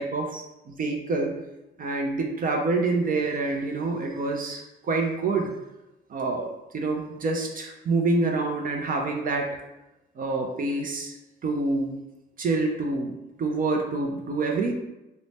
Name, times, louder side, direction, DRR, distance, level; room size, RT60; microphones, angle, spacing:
voice 1, 0.0-1.3 1.8-5.5 6.1-9.5 10.2-11.1 11.4-12.0 12.4-13.1 13.4-14.7, right 3 dB, 45° right, 2 dB, 0.4 m, -27 dB
2.6 x 2.1 x 3.3 m, 0.95 s
cardioid pair, 90°, 20 cm